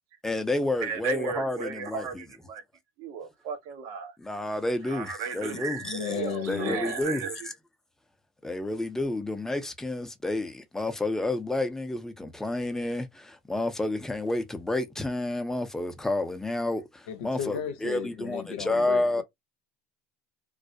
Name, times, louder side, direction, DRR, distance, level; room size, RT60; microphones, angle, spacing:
voice 1, 0.2-2.2 4.2-6.0 6.5-7.2 8.4-19.2, left 2 dB, 5° left, 0.6 m, -30 dB
voice 2, 0.8-2.6 3.0-4.1 4.8-7.5, right 6 dB, 60° right, 0.7 m, -35 dB
voice 3, 5.8-6.8 17.1-19.2, left 9 dB, 80° left, 0.7 m, -35 dB
2.3 x 2.0 x 2.6 m
supercardioid pair, 105°, 6 cm